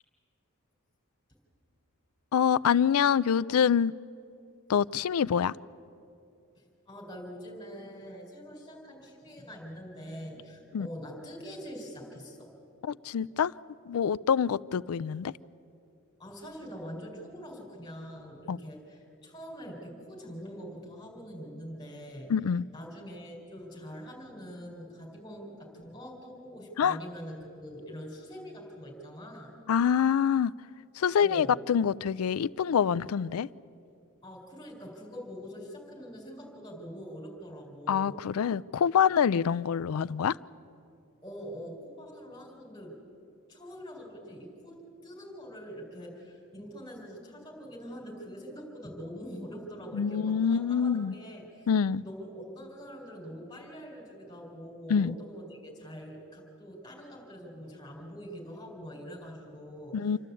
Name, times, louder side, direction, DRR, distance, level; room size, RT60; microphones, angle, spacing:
voice 1, 2.3-3.9 4.7-5.5 10.7-10.9 12.9-13.5 13.9-15.3 18.5-18.6 22.3-22.6 26.8-27.0 29.7-30.5 31.0-33.5 37.9-40.4 49.9-51.1 51.7-52.0 54.9-55.1 59.9-60.2, left 7 dB, 75° left, 18 dB, 0.4 m, -26 dB
voice 2, 6.5-12.5 16.2-22.3 22.7-29.5 31.2-31.6 34.2-38.2 41.2-43.0 43.5-51.7 52.0-60.2, equal, 20° left, -1 dB, 4.4 m, -44 dB
28.0 x 12.0 x 8.4 m, 2.6 s
head